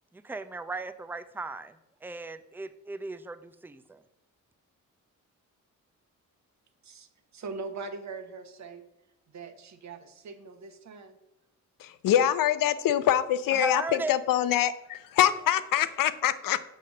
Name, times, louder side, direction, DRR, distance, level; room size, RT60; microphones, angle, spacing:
voice 1, 0.1-4.0 13.6-14.2, right 3 dB, 5° right, 12 dB, 0.4 m, -36 dB
voice 2, 7.3-8.8 9.3-11.2, right 4 dB, 55° right, 9 dB, 1.0 m, -41 dB
voice 3, 11.8-16.6, left 11 dB, 75° left, 13 dB, 0.6 m, -25 dB
6.6 x 4.2 x 6.3 m, 0.90 s
cardioid pair, 80°, 33 cm